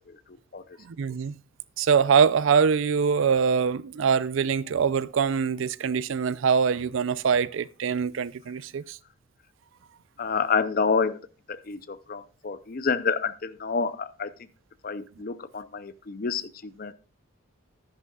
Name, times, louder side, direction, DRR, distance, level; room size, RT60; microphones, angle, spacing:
voice 1, 0.9-1.3 1.8-9.0, right 6 dB, 70° right, 0.4 m, -23 dB
voice 2, 10.2-11.2 11.5-14.3 14.8-16.9, left 5 dB, 45° left, 0.5 m, -28 dB
11.0 x 10.5 x 2.3 m
head